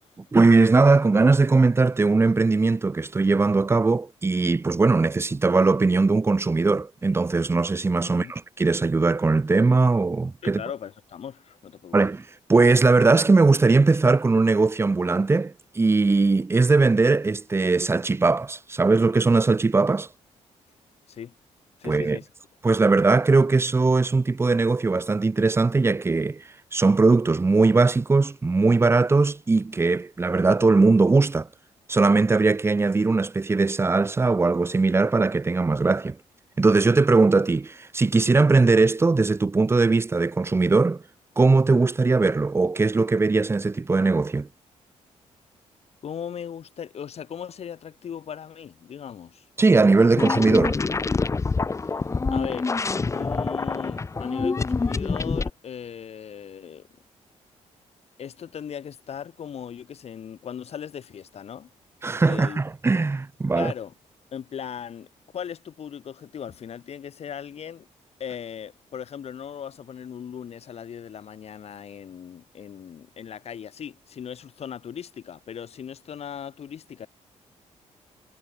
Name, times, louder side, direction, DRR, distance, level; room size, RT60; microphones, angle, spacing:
voice 1, 0.3-10.6 11.9-12.2 12.5-20.1 21.8-22.2 22.6-26.4 26.7-31.5 31.9-36.2 36.6-41.0 41.4-44.5 49.6-50.8 62.0-63.7, right 3 dB, 20° right, 1.0 m, -20 dB
voice 2, 10.4-12.1 21.1-21.3 21.8-22.3 46.0-49.5 51.8-52.0 52.3-52.7 53.1-56.9 58.2-61.7 62.2-62.6 63.6-63.9 64.3-65.1 65.3-67.9 68.2-77.1, left 8 dB, 55° left, 5.7 m, -38 dB
sound 1, 50.2-55.5, left 4 dB, 25° left, 1.2 m, -26 dB
cardioid pair, 110°, 12 cm